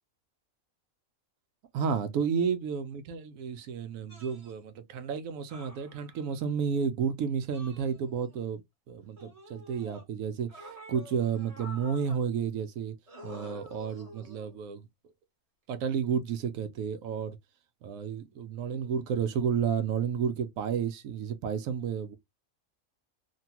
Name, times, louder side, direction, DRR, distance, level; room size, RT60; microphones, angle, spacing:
voice 1, 1.7-8.6 8.9-10.6 10.9-12.9 13.2-14.8 15.7-17.4 17.8-22.2, right 7 dB, 75° right, 1.0 m, -31 dB
sound 1, 4.1-4.5 5.5-6.4 7.5-8.4 9.2-10.0 10.5-12.2 13.1-14.6 15.7-15.9, equal, 30° right, 1.0 m, -49 dB
3.2 x 2.3 x 2.8 m
omnidirectional pair, 1.5 m